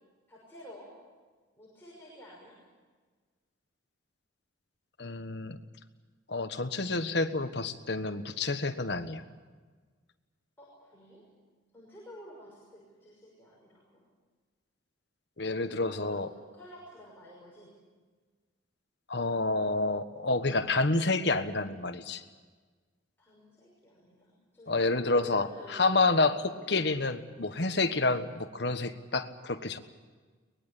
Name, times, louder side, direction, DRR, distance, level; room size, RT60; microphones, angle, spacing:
voice 1, 0.3-0.9 1.6-2.6 10.6-11.2 11.7-13.9 15.8-17.7 23.2-24.7 25.0-26.0, equal, 10° left, -5 dB, 5.9 m, -51 dB
voice 2, 5.0-5.6 6.3-9.2 15.4-16.3 19.1-22.2 24.7-29.8, left 3 dB, 60° left, 8 dB, 1.4 m, -29 dB
23.5 x 20.5 x 8.4 m, 1.4 s
head